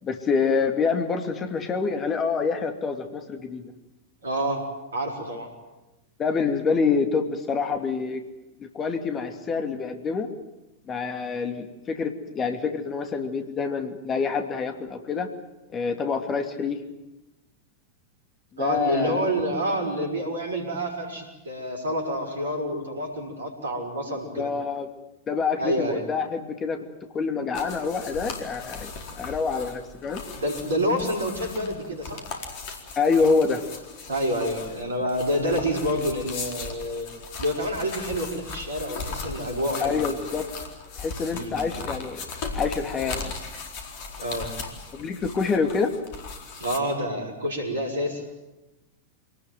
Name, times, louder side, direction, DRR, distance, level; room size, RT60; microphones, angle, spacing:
voice 1, 0.0-3.6 6.2-8.2 8.6-10.3 10.9-15.3 15.7-16.8 18.5-19.3 24.3-24.9 25.3-26.8 27.1-28.9 29.1-30.2 33.0-33.6 39.8-40.5 41.0-42.3 42.5-43.4 44.9-45.9, left 5 dB, 25° left, 6 dB, 2.7 m, -26 dB
voice 2, 4.2-4.6 4.9-5.5 18.6-24.5 25.6-26.1 30.3-32.2 34.1-37.1 37.4-40.2 41.3-41.6 44.2-44.5 46.6-48.2, equal, 70° right, 3 dB, 5.9 m, -28 dB
sound 1, 27.5-46.8, left 4 dB, 45° left, 4.3 m, -38 dB
26.5 x 19.0 x 9.4 m, 1.0 s
figure-of-eight pair, 90°, 0 cm